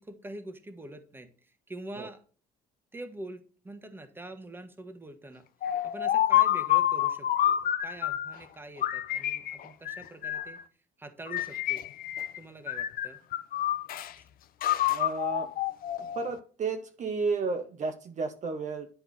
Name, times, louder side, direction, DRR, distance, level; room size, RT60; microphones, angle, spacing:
voice 1, 0.0-2.2 2.9-5.4 5.8-10.6 11.0-11.9 12.3-13.2 14.2-14.3, right 2 dB, 10° right, 8 dB, 1.4 m, -45 dB
sound 1, 5.6-8.4 8.8-10.6 11.3-12.4 12.7-14.1 14.6-16.4, left 12 dB, 60° left, 0.7 m, -28 dB
voice 2, 14.9-15.5 16.0-18.9, right 4 dB, 45° right, 7 dB, 1.0 m, -32 dB
10.5 x 4.5 x 4.1 m, 0.41 s
cardioid pair, 110°, 17 cm